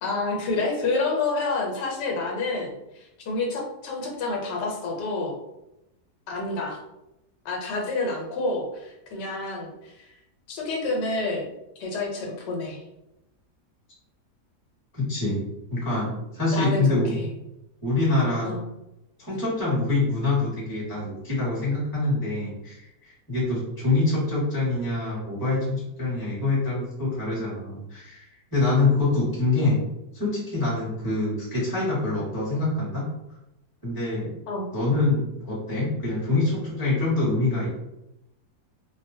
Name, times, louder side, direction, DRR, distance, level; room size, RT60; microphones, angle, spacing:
voice 1, 0.0-5.4 6.3-6.8 7.4-10.1 10.5-11.5 11.8-12.8 16.5-17.3 18.4-18.6 34.5-34.7, left 3 dB, 90° left, 0 dB, 1.3 m, -29 dB
voice 2, 14.9-15.4 15.7-17.2 17.8-18.5 19.2-22.9 23.3-29.8 30.1-33.1 33.8-34.3 34.7-37.7, left 2 dB, 15° left, -8 dB, 1.0 m, -25 dB
2.8 x 2.0 x 2.6 m, 0.90 s
omnidirectional pair, 1.8 m